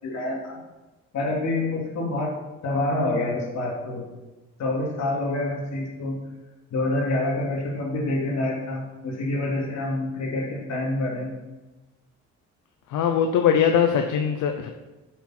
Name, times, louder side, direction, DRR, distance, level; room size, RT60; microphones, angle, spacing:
voice 1, 0.0-0.6 1.1-2.4 2.6-4.0 4.6-6.2 6.7-11.3, left 2 dB, 60° left, -1 dB, 3.0 m, -27 dB
voice 2, 12.9-14.7, left 8 dB, 80° left, 5 dB, 0.8 m, -21 dB
11.0 x 8.0 x 4.4 m, 1.1 s
cardioid pair, 90°, 30 cm